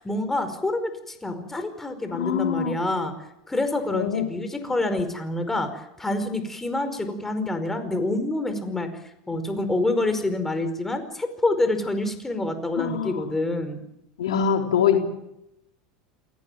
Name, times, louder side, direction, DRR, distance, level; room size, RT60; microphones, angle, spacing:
voice 1, 0.0-3.1 3.5-8.9 9.3-13.8, left 2 dB, 10° left, 8 dB, 5.0 m, -27 dB
voice 2, 2.1-2.8 3.9-4.3 12.8-13.3 14.2-15.0, left 8 dB, 80° left, 4 dB, 3.6 m, -24 dB
28.0 x 18.0 x 9.2 m, 0.86 s
hypercardioid pair, 95°, 3 cm